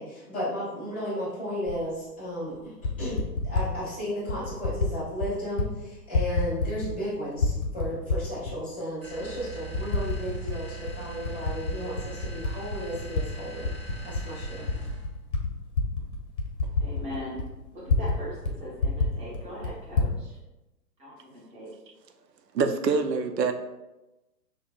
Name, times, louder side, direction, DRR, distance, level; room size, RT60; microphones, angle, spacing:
voice 1, 0.0-2.7 3.0-13.7 14.0-14.7, equal, 5° left, -17 dB, 0.4 m, -34 dB
Typing, 1.7-1.8 2.6-3.7 4.3-4.9 5.2-5.7 6.0-7.0 7.3-8.5 9.1-9.2 9.7-10.6 10.9-13.2 13.6-18.2 18.4-18.5 18.8-20.1, left 3 dB, 45° left, 0.7 m, -28 dB
sound 1, 9.0-15.1, right 4 dB, 55° right, 1.3 m, -41 dB
voice 2, 16.8-20.4 21.0-21.7, equal, 15° right, -6 dB, 0.9 m, -40 dB
voice 3, 22.5-23.5, right 5 dB, 80° right, 7 dB, 0.6 m, -25 dB
5.8 x 2.1 x 2.3 m, 1.0 s
figure-of-eight pair, 125°, 49 cm